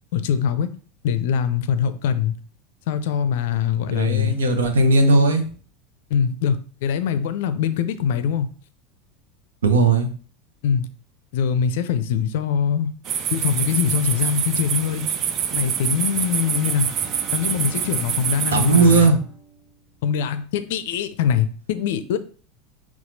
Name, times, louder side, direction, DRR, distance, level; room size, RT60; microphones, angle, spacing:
voice 1, 0.1-0.7 1.0-2.3 2.9-4.4 6.1-8.5 10.6-10.9 11.3-12.9 13.3-15.1 15.5-16.9 17.3-19.1 20.0-22.2, left 7 dB, 65° left, 0.4 m, -23 dB
voice 2, 3.9-5.5 9.6-10.1 18.5-19.2, right 3 dB, 80° right, 0.7 m, -17 dB
sound 1, 13.0-19.1, right 8 dB, 45° right, 0.4 m, -26 dB
Bowed string instrument, 15.5-20.4, right 3 dB, 5° left, 1.3 m, -45 dB
5.7 x 2.4 x 2.7 m
hypercardioid pair, 80°, 0 cm